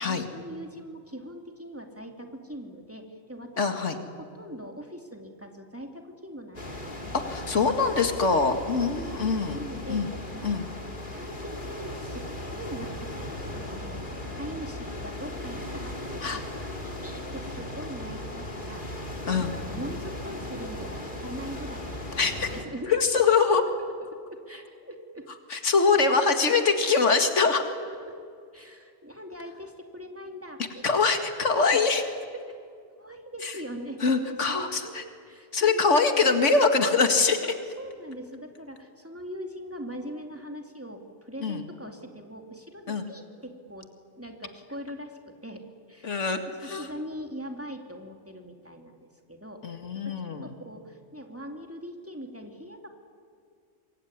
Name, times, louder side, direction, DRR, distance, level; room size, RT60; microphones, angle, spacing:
voice 1, 0.0-7.2 8.5-8.7 8.9-10.0 10.3-18.9 19.3-23.0 23.3-23.6 24.1-25.3 27.1-27.3 27.9-28.2 28.5-31.4 31.7-31.8 32.4-32.6 33.0-35.0 35.3-35.9 37.4-43.9 44.2-45.6 45.9-46.2 46.6-50.1 50.4-52.9, equal, 10° right, 3 dB, 2.5 m, -42 dB
voice 2, 3.6-4.0 7.1-9.6 9.9-10.1 10.4-10.7 16.2-16.4 19.3-19.5 22.2-22.5 22.9-23.6 25.5-27.6 30.8-32.0 33.4-33.5 34.0-35.0 35.5-37.4 41.4-41.6 42.9-43.0 46.0-46.9 49.6-50.5, left 4 dB, 90° left, 6 dB, 2.3 m, -23 dB
sound 1, 6.5-22.6, left 1 dB, 45° left, 2.9 m, -37 dB
26.5 x 22.0 x 9.7 m, 2.3 s
omnidirectional pair, 1.2 m